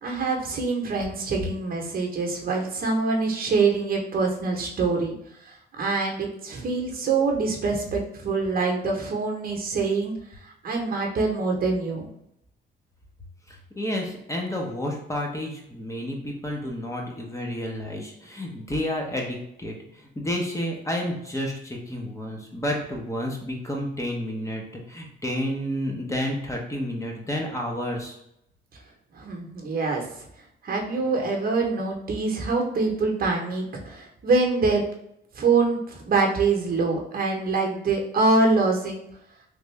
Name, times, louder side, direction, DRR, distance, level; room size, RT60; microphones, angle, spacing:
voice 1, 0.0-5.2 5.4-10.1 10.6-12.1 29.1-30.0 30.6-34.8 35.3-39.0, right 3 dB, 50° right, 2 dB, 0.9 m, -25 dB
voice 2, 13.7-19.7 20.2-28.2, left 1 dB, 15° left, 0 dB, 0.9 m, -30 dB
3.4 x 2.5 x 3.2 m, 0.77 s
cardioid pair, 90°, 20 cm